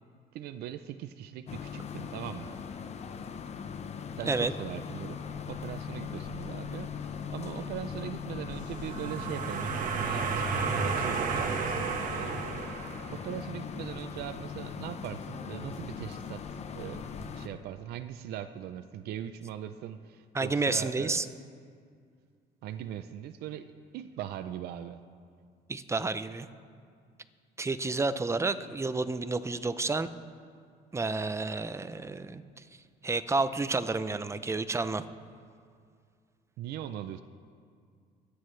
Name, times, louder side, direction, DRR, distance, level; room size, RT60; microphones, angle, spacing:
voice 1, 0.3-2.6 4.1-5.2 5.5-12.7 13.1-21.4 22.6-23.7 23.9-25.0 36.6-37.2, right 10 dB, 70° right, 9 dB, 0.6 m, -40 dB
sound 1, 1.5-17.5, left 6 dB, 40° left, 0.8 m, -40 dB
sound 2, 8.7-13.4, right 5 dB, 50° right, 1.4 m, -32 dB
voice 2, 20.3-21.3 25.7-26.5 27.6-30.1 30.9-32.4 33.0-35.0, right 3 dB, 15° right, 12 dB, 0.6 m, -30 dB
24.0 x 9.6 x 3.3 m, 2.2 s
cardioid pair, 110°, 17 cm